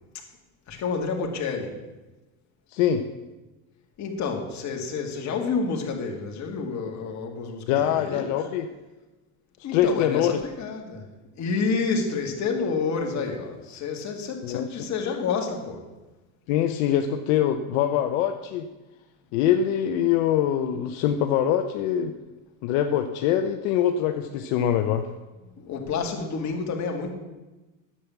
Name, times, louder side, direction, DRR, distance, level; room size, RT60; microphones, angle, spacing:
voice 1, 0.7-1.8 4.0-8.6 9.6-11.1 11.4-15.8 25.6-27.1, left 4 dB, 45° left, 2 dB, 2.2 m, -29 dB
voice 2, 2.7-3.0 7.7-8.7 9.7-10.4 14.4-14.7 16.5-18.7 19.3-22.1 22.6-25.1, left 10 dB, 75° left, 6 dB, 0.9 m, -23 dB
10.0 x 7.6 x 7.0 m, 1.1 s
supercardioid pair, 110°, 40 cm